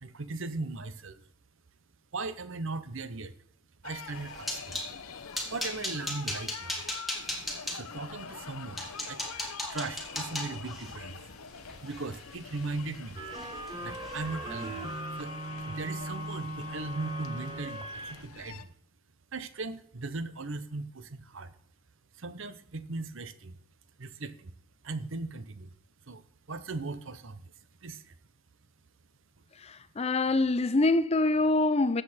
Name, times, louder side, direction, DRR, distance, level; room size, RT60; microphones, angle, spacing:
voice 1, 0.0-1.2 2.1-3.3 3.8-4.8 5.5-6.8 7.7-9.2 9.7-11.2 11.8-13.2 13.8-14.9 15.2-15.4 15.7-18.7 19.3-21.5 22.2-23.6 24.0-24.5 24.8-25.7 26.1-26.2 26.5-27.4 27.8-28.1, right 3 dB, 55° right, 0.8 m, -38 dB
sound 1, 3.8-18.6, left 6 dB, 75° left, 0.8 m, -46 dB
sound 2, 4.0-4.9 5.3-7.8 8.4-8.5 8.8-13.0 13.3-13.7 14.0-14.2 14.6-14.8, left 1 dB, ahead, 1.9 m, -37 dB
sound 3, 13.2-18.2, right 1 dB, 20° right, 1.1 m, -38 dB
voice 2, 29.6-32.0, left 2 dB, 30° left, 0.5 m, -25 dB
13.0 x 7.7 x 4.4 m
head